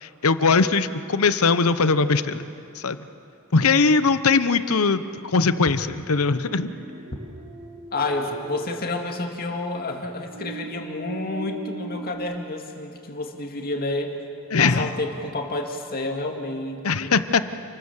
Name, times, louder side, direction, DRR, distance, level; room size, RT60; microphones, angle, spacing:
voice 1, 0.0-2.5 2.8-3.0 3.5-5.0 5.3-6.7 14.5-14.9 16.8-17.4, left 4 dB, 90° left, 12 dB, 0.9 m, -20 dB
sound 1, 6.4-9.6 10.3-12.2, right 2 dB, 60° right, 2.6 m, -39 dB
voice 2, 7.9-14.1 14.6-17.1, left 2 dB, 45° left, 3 dB, 2.3 m, -29 dB
29.0 x 20.0 x 7.4 m, 2.7 s
head